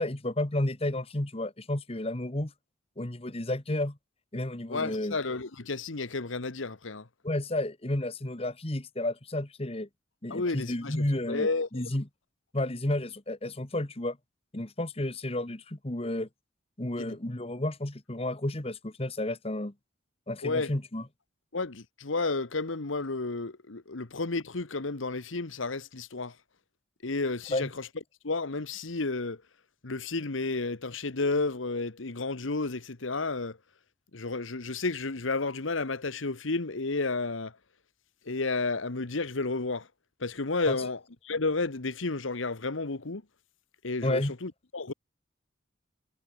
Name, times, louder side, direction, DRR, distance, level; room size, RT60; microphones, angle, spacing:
voice 1, 0.0-2.5 3.0-4.0 4.3-5.2 7.2-9.9 10.2-12.0 12.5-14.2 14.5-16.3 16.8-19.7 20.3-21.0 27.5-27.7 40.7-40.8 44.0-44.3, left 1 dB, 30° left, 1.5 m, -31 dB
voice 2, 4.7-7.1 10.3-11.9 17.0-17.2 20.4-20.7 21.5-26.3 27.0-27.9 28.2-29.4 29.8-33.6 34.1-37.5 38.3-39.9 40.2-43.2 43.8-44.9, left 3 dB, 85° left, 1.3 m, -32 dB
head